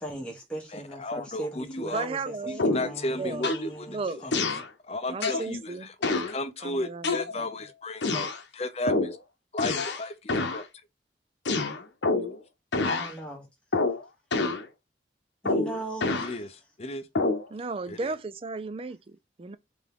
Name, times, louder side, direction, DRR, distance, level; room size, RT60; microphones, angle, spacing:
voice 1, 0.0-4.6 12.8-13.5 15.4-16.4, right 2 dB, 5° left, 1.2 m, -39 dB
voice 2, 0.7-2.1 2.5-4.3 4.9-9.2 9.5-10.7 12.2-12.3 16.2-17.1 17.9-18.1, left 2 dB, 35° left, 0.6 m, -34 dB
voice 3, 1.9-2.8 3.2-3.5 3.9-4.2 5.1-5.9 6.6-7.5 17.5-19.6, right 4 dB, 30° right, 0.4 m, -35 dB
sound 1, 2.6-3.0 3.4-3.7 4.3-4.7 5.2-5.5 6.0-6.4 7.0-7.6 8.0-8.4 8.9-9.2 9.6-10.0 10.3-10.6 11.4-12.4 12.7-13.1 13.7-14.0 14.3-14.6 15.4-16.3 17.1-17.5, left 3 dB, 80° left, 0.8 m, -27 dB
3.7 x 3.5 x 3.6 m
head